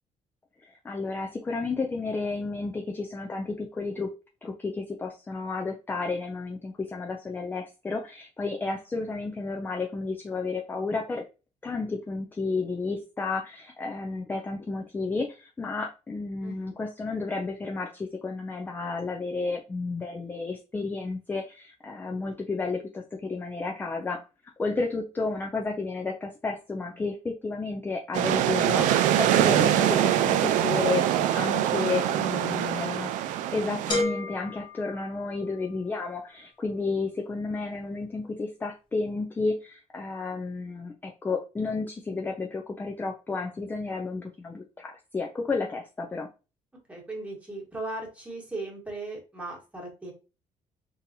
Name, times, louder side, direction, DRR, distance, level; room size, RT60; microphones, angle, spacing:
voice 1, 0.6-11.2 11.6-24.2 24.6-31.1 31.3-33.1 33.5-46.3, left 3 dB, 15° left, 2 dB, 0.4 m, -32 dB
voice 2, 16.4-16.8 32.1-33.0 46.9-50.1, right 2 dB, 10° right, -2 dB, 1.4 m, -38 dB
sound 1, 28.1-34.0, right 11 dB, 80° right, 0.4 m, -24 dB
sound 2, 33.9-35.8, left 2 dB, 40° left, 0.8 m, -32 dB
3.7 x 2.7 x 2.7 m, 0.32 s
cardioid pair, 125°, 13 cm